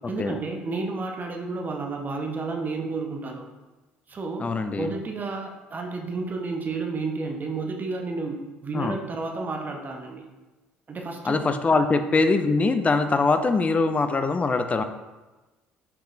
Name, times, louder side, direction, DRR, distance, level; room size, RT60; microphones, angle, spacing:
voice 1, 0.1-3.4 4.1-4.5 4.8-10.2 10.9-11.4 11.7-11.8, right 3 dB, 35° right, 2 dB, 0.6 m, -31 dB
voice 2, 4.4-4.9 8.7-9.0 11.2-14.8, left 3 dB, 25° left, 8 dB, 0.4 m, -23 dB
5.8 x 3.5 x 2.6 m, 1.1 s
hypercardioid pair, 60°, 5 cm